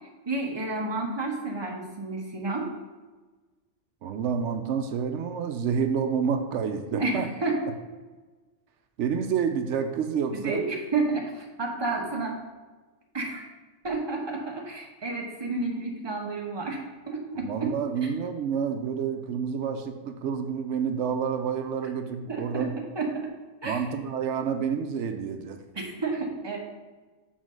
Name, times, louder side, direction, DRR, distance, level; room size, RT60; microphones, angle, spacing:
voice 1, 0.3-2.7 6.9-7.6 10.3-12.4 13.1-13.4 13.8-17.7 22.3-22.7 22.9-23.3 23.6-23.8 25.7-26.6, right 3 dB, 25° right, -1 dB, 1.1 m, -30 dB
voice 2, 4.0-7.3 9.0-10.6 17.3-22.7 23.6-25.6, right 7 dB, 85° right, 7 dB, 0.9 m, -29 dB
6.2 x 4.0 x 6.2 m, 1.3 s
omnidirectional pair, 1.2 m